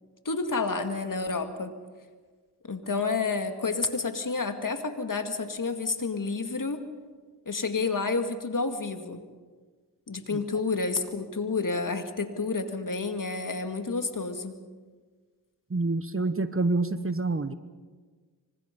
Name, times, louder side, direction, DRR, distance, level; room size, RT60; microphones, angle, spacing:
voice 1, 0.3-1.7 2.7-6.8 7.5-9.2 10.1-14.6, left 4 dB, 50° left, 6 dB, 2.3 m, -30 dB
voice 2, 15.7-17.5, right 3 dB, 30° right, 12 dB, 1.2 m, -27 dB
26.0 x 25.0 x 5.4 m, 1.5 s
cardioid pair, 55°, 41 cm